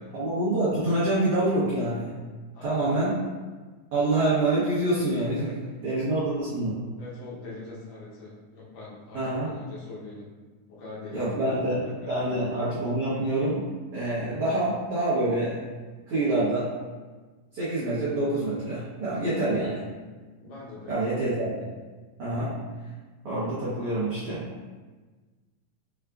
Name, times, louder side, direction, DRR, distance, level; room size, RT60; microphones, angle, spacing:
voice 1, 0.1-2.1 2.6-3.2 3.9-5.6 5.8-6.8 9.1-9.5 11.1-13.6 13.9-15.6 16.1-16.7 17.5-19.8 20.9-21.7 22.2-22.5 23.2-24.5, right 2 dB, 75° right, -12 dB, 1.3 m, -26 dB
voice 2, 2.5-3.0 5.5-5.6 7.0-10.3 10.7-11.6 12.0-12.1 20.4-21.2, left 2 dB, 70° left, -5 dB, 2.2 m, -43 dB
6.9 x 2.4 x 2.3 m, 1.3 s
omnidirectional pair, 4.2 m